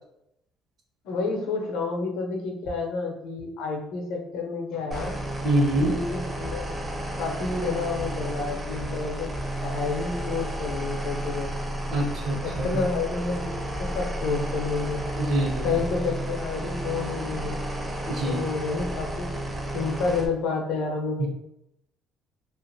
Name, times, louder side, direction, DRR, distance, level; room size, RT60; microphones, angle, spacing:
voice 1, 1.0-5.2 5.8-6.7 7.2-9.3 9.6-11.5 12.4-13.5 13.8-15.0 15.6-17.6 18.2-19.3 19.7-21.3, left 4 dB, 85° left, 2 dB, 0.6 m, -29 dB
sound 1, 4.9-20.3, right 1 dB, 20° right, 0.5 m, -32 dB
voice 2, 5.4-5.9 11.9-12.8 15.2-15.8 18.1-18.5 21.2-21.3, right 1 dB, 55° right, 0 dB, 0.8 m, -25 dB
2.5 x 2.4 x 2.7 m, 0.80 s
cardioid pair, 130°, 0 cm